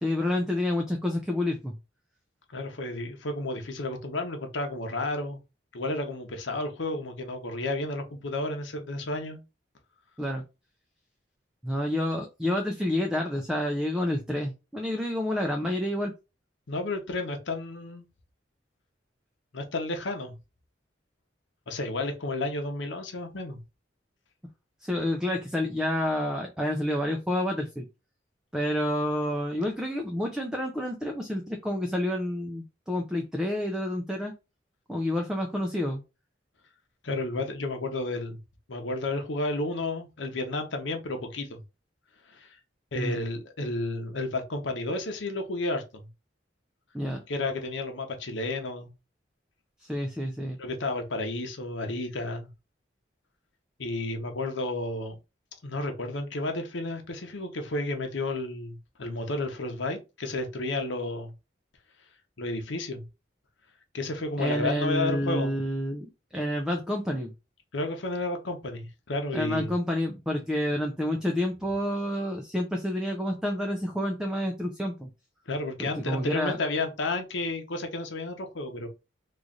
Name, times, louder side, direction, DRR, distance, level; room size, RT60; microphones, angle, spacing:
voice 1, 0.0-1.7 10.2-10.4 11.6-16.1 24.8-27.9 28.5-34.3 34.9-36.0 42.9-43.2 46.9-47.2 49.8-50.6 64.4-67.3 69.3-75.1 75.8-76.6, left 1 dB, 5° right, 0.4 m, -29 dB
voice 2, 2.5-5.4 5.7-9.4 16.7-18.1 19.5-20.3 21.7-23.6 37.0-38.4 38.7-41.6 42.3-42.6 42.9-46.1 47.3-48.9 50.6-52.5 53.8-55.2 55.6-61.3 62.4-63.0 63.9-65.6 67.7-69.7 75.5-78.9, left 2 dB, 90° left, 0.9 m, -32 dB
3.1 x 2.5 x 3.8 m
head